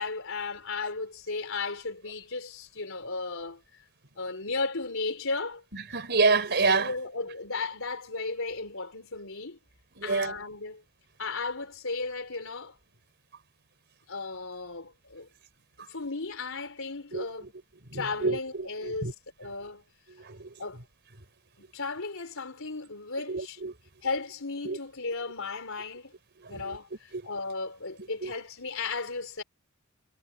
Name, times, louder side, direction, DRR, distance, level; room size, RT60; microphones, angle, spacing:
voice 1, 0.0-3.6 4.2-5.6 6.8-9.6 10.0-10.8 11.2-12.8 14.1-15.3 15.8-17.5 17.9-19.8 20.6-20.8 21.6-23.6 24.0-26.1 26.5-29.4, left 3 dB, 65° left, 4.6 m, -35 dB
voice 2, 5.9-6.9 10.0-10.4 17.1-17.5 17.9-19.1 20.1-20.5 23.3-23.7 24.6-24.8 26.4-26.8 27.1-27.2 28.2-28.3, right 4 dB, 55° right, 4.5 m, -28 dB
head